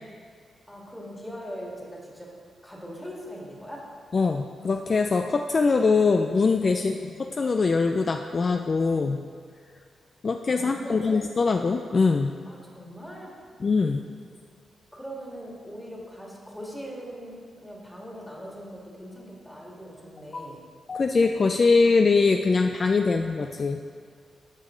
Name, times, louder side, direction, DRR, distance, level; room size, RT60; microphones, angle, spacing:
voice 1, 0.7-2.3 2.6-3.9 6.7-7.1 10.5-11.2 12.5-13.4 14.9-20.6 23.0-23.3, equal, 10° left, -3 dB, 2.0 m, -41 dB
voice 2, 4.1-7.0 7.4-9.2 10.2-12.4 13.6-14.0 20.3-20.5 20.9-23.8, left 4 dB, 45° left, 5 dB, 0.3 m, -22 dB
12.0 x 5.4 x 3.8 m, 2.1 s
cardioid pair, 75°, 0 cm